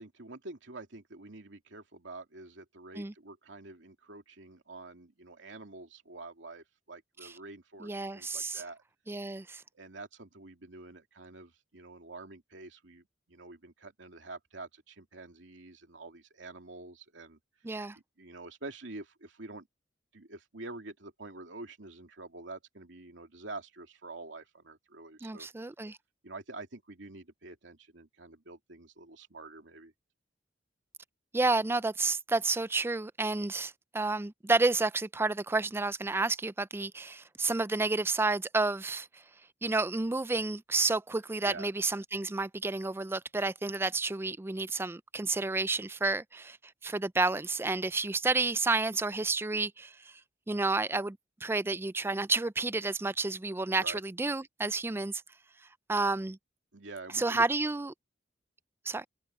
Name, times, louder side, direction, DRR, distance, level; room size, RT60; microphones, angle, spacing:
voice 1, 0.0-8.8 9.7-17.4 18.2-19.7 20.1-25.5 26.2-29.9 41.4-41.7 53.8-54.0 56.7-57.4, right 2 dB, 85° right, 2.7 m, -47 dB
voice 2, 7.8-8.6 9.1-9.6 17.6-18.0 25.2-26.0 31.3-39.1 39.6-46.6 46.8-50.1 50.5-55.2 55.9-56.4 57.1-57.9 58.9-59.0, right 3 dB, 15° right, 0.4 m, -30 dB
head